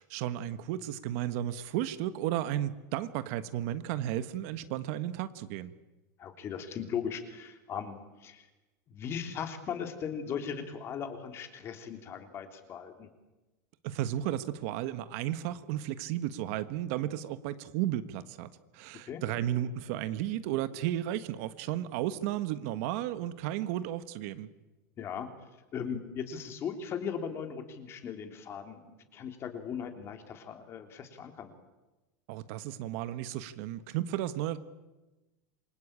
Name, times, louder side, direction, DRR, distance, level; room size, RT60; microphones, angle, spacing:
voice 1, 0.0-5.7 13.8-24.5 32.3-34.6, right 12 dB, 55° right, 12 dB, 1.4 m, -34 dB
voice 2, 6.2-8.5 8.9-13.1 19.0-19.2 25.0-25.3 25.7-28.8 29.1-31.5, left 7 dB, 25° left, 6 dB, 3.2 m, -38 dB
27.5 x 24.0 x 8.8 m, 1.1 s
supercardioid pair, 165°, 10 cm